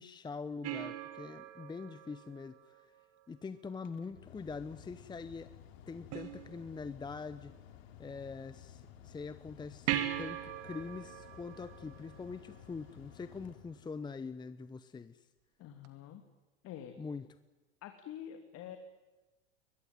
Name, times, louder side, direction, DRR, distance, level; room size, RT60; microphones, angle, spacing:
voice 1, 0.0-2.9 3.3-5.5 5.9-7.5 8.0-15.3 17.0-17.3, left 4 dB, 15° left, 13 dB, 0.9 m, -44 dB
sound 1, 0.6-3.3 6.1-7.1 9.9-12.8 15.8-15.9, right 12 dB, 45° right, 2.5 m, -40 dB
Mechanical fan, 3.7-14.3, left 10 dB, 65° left, 3.0 m, -55 dB
voice 2, 15.6-16.2 16.6-17.0 17.8-18.8, left 10 dB, 45° left, 6 dB, 2.7 m, -46 dB
22.0 x 22.0 x 9.8 m, 1.1 s
hypercardioid pair, 100°, 34 cm